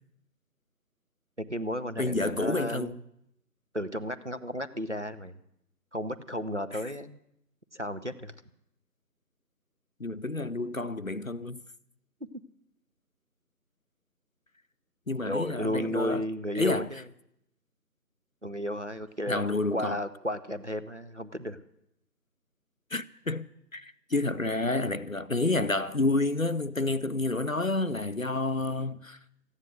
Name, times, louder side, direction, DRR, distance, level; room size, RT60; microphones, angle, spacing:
voice 1, 1.4-3.0 3.7-5.4 5.9-7.2 7.7-8.3 15.3-17.1 18.4-21.6, equal, 45° right, 0.6 m, -33 dB
voice 2, 2.0-2.9 10.0-11.6 15.1-16.2 16.6-16.9 19.3-20.0 22.9-23.5 23.7-29.2, left 2 dB, 55° left, 0.5 m, -29 dB
14.5 x 9.8 x 7.9 m
figure-of-eight pair, 170°, 50 cm